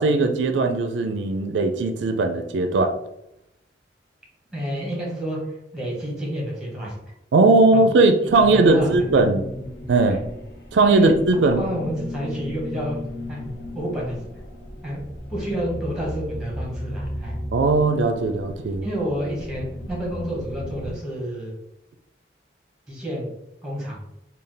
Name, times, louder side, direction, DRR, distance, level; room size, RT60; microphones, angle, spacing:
voice 1, 0.0-2.9 7.3-9.5 9.9-10.2 10.7-11.6 17.5-18.9, right 3 dB, 90° right, 6 dB, 0.4 m, -18 dB
voice 2, 4.5-5.4 5.7-6.9 7.7-7.8 8.5-9.3 10.1-10.2 10.9-11.1 11.5-13.0 13.3-13.4 13.7-14.3 14.8-15.0 15.3-17.4 18.8-21.5 22.9-23.3 23.6-24.0, equal, 5° right, -4 dB, 1.2 m, -29 dB
sound 1, 8.2-21.0, left 1 dB, 60° left, 0.8 m, -35 dB
3.3 x 2.3 x 3.8 m, 0.83 s
head